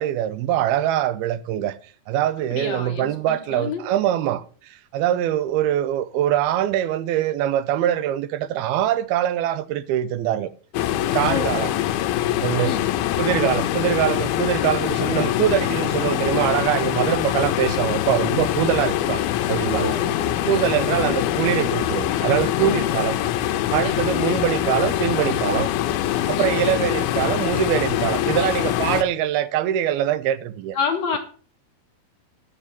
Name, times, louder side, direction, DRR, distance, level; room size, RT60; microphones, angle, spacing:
voice 1, 0.0-1.8 2.1-10.5 11.0-11.7 12.4-12.8 13.2-20.0 20.5-23.2 23.5-25.7 26.3-30.8, right 11 dB, 85° right, 2.7 m, -23 dB
voice 2, 2.5-3.8 11.3-11.7 12.6-12.8 19.8-20.1 20.5-20.7 22.6-22.8 23.8-24.1 26.4-26.6 30.7-31.2, left 5 dB, 55° left, 2.3 m, -29 dB
sound 1, 10.7-29.0, left 12 dB, 85° left, 2.7 m, -23 dB
9.9 x 6.8 x 7.6 m
omnidirectional pair, 4.3 m